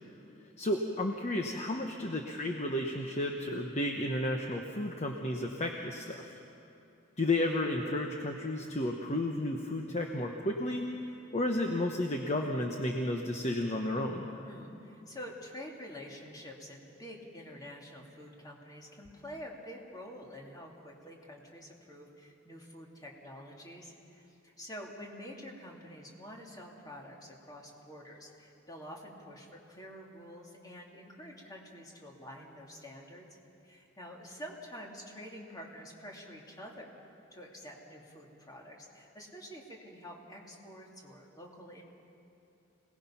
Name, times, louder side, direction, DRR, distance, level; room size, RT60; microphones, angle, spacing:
voice 1, 0.6-6.3 7.2-10.9 11.3-14.3, left 1 dB, 35° left, 2 dB, 1.0 m, -32 dB
voice 2, 14.4-33.3 33.6-36.9 37.3-41.8, equal, 20° left, -1 dB, 2.6 m, -48 dB
26.0 x 18.5 x 5.8 m, 2.7 s
head